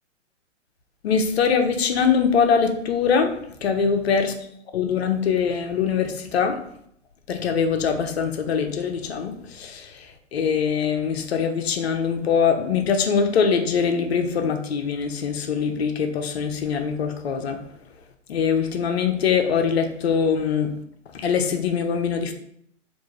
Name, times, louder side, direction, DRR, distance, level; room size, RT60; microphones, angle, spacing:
voice 1, 1.0-4.3 4.7-6.6 7.3-17.6 18.3-20.7 21.1-22.3, left 6 dB, 55° left, 6 dB, 0.6 m, -23 dB
3.4 x 2.5 x 3.1 m, 0.68 s
figure-of-eight pair, 125°, 37 cm